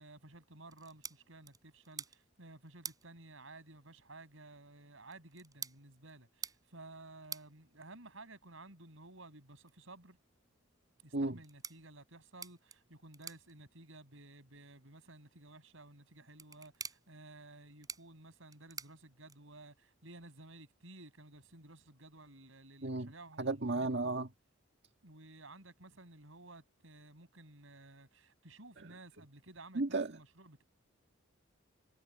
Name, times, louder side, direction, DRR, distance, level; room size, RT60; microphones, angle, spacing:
voice 1, 0.0-10.2 11.0-24.2 25.0-30.6, right 2 dB, 75° right, 7.4 m, -55 dB
sound 1, 0.6-19.7, right 5 dB, 20° right, 5.2 m, -52 dB
voice 2, 23.4-24.3 29.8-30.1, right 2 dB, 60° right, 1.8 m, -33 dB
head